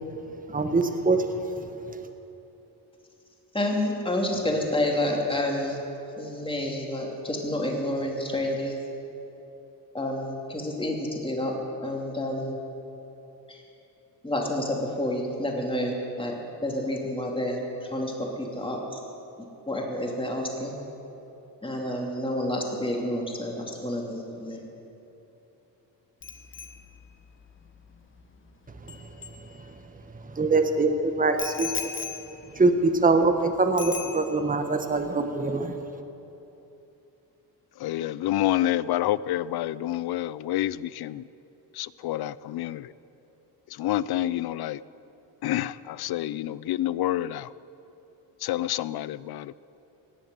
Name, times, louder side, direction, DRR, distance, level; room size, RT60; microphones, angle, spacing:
voice 1, 0.5-1.3 30.3-31.7 32.6-35.8, right 3 dB, 20° right, 6 dB, 1.2 m, -23 dB
voice 2, 3.5-5.8 6.2-8.7 9.9-11.6 11.8-12.6 13.5-13.6 14.2-19.0 19.7-20.7 21.6-24.6, left 1 dB, 10° left, 0 dB, 2.8 m, -29 dB
Bicycle bell, 26.2-30.0 31.4-33.4 33.8-34.6 34.9-35.2, left 5 dB, 30° left, 1.4 m, -39 dB
voice 3, 37.8-41.2 41.8-42.9 43.8-44.8 45.4-47.5 48.4-49.5, left 13 dB, 60° left, 19 dB, 0.5 m, -28 dB
18.5 x 7.3 x 9.5 m, 3.0 s
cardioid pair, 95°, 43 cm